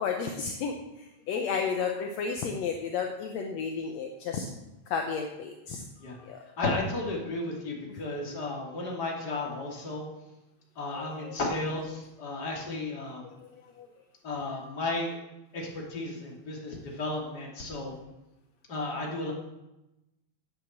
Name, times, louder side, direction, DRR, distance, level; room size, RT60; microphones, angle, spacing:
voice 1, 0.0-4.5 4.9-5.8 6.2-6.4 11.0-11.3 13.5-13.9, left 6 dB, 70° left, 3 dB, 2.1 m, -32 dB
voice 2, 6.6-10.1 10.8-13.2 14.2-15.2 15.5-17.9 18.7-19.3, left 2 dB, 35° left, -1 dB, 3.1 m, -33 dB
11.5 x 8.6 x 7.4 m, 0.96 s
omnidirectional pair, 3.3 m